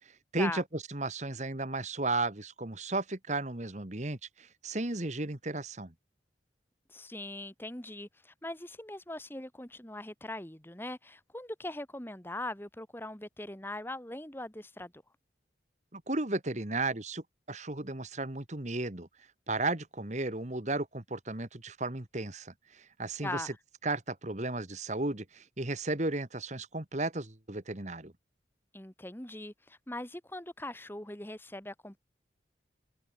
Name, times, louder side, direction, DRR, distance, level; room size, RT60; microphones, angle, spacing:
voice 1, 0.3-5.9 15.9-19.1 19.5-23.5 23.8-28.1, right 2 dB, 40° right, 1.8 m, -34 dB
voice 2, 6.9-14.9 23.2-23.5 28.7-32.0, left 1 dB, 10° left, 1.6 m, -41 dB
open air
head